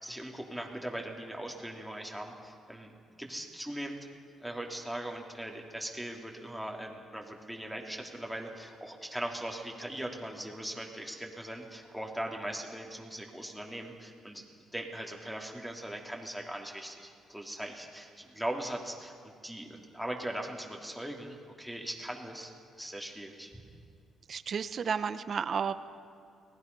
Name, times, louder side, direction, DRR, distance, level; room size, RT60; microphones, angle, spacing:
voice 1, 0.0-2.9 3.2-4.0 4.4-14.5 14.7-23.5, right 1 dB, ahead, 0 dB, 3.2 m, -40 dB
voice 2, 24.3-25.7, right 6 dB, 50° right, 12 dB, 0.9 m, -32 dB
29.5 x 19.5 x 5.5 m, 2.4 s
cardioid pair, 90°, 0 cm